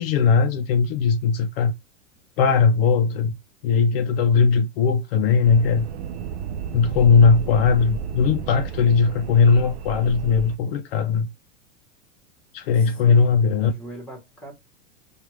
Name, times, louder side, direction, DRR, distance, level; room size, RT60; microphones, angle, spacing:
voice 1, 0.0-1.7 2.4-3.3 3.6-5.9 6.7-11.3 12.5-13.7, left 5 dB, 50° left, 0.5 m, -19 dB
sound 1, 5.4-10.6, right 8 dB, 60° right, 0.5 m, -33 dB
voice 2, 12.7-13.3 13.6-14.5, right 1 dB, 5° left, 1.0 m, -41 dB
4.9 x 2.3 x 3.1 m
supercardioid pair, 170°, 37 cm